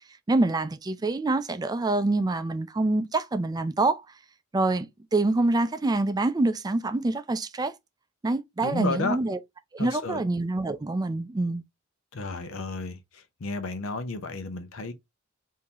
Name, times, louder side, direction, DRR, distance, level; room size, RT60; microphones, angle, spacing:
voice 1, 0.3-4.0 4.5-4.9 5.1-7.7 8.2-9.4 9.7-11.6, right 2 dB, 20° right, 0.4 m, -26 dB
voice 2, 8.6-9.2 9.8-10.2 12.1-13.0 13.4-14.9, left 3 dB, 85° left, 0.7 m, -32 dB
3.8 x 2.7 x 2.9 m
head